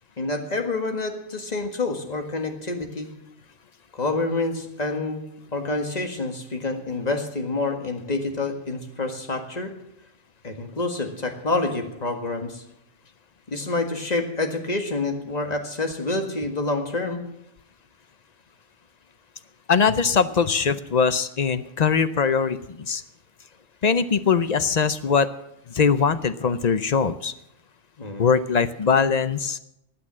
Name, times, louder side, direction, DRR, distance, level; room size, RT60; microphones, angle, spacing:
voice 1, 0.2-3.1 3.9-5.2 5.5-9.7 10.4-12.6 13.5-17.2 28.0-28.3, left 2 dB, 30° left, 5 dB, 1.8 m, -27 dB
voice 2, 19.7-23.0 23.8-25.3 25.7-27.3 28.2-29.6, left 6 dB, 50° left, 12 dB, 0.5 m, -21 dB
16.0 x 9.7 x 7.4 m, 0.80 s
omnidirectional pair, 1.4 m